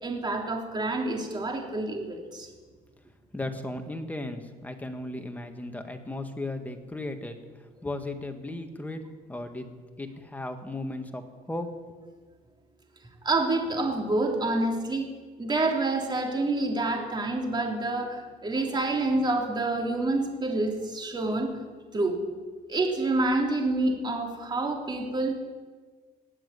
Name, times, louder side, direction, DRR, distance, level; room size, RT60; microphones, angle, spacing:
voice 1, 0.0-2.5 13.2-15.1 15.4-21.5 21.9-22.2 22.7-25.3, right 2 dB, 25° right, 1 dB, 3.2 m, -27 dB
voice 2, 3.3-7.4 7.8-9.0 9.3-9.7 10.0-11.7, left 2 dB, 10° left, 6 dB, 1.7 m, -36 dB
18.5 x 7.6 x 9.9 m, 1.4 s
cardioid pair, 110°, 17 cm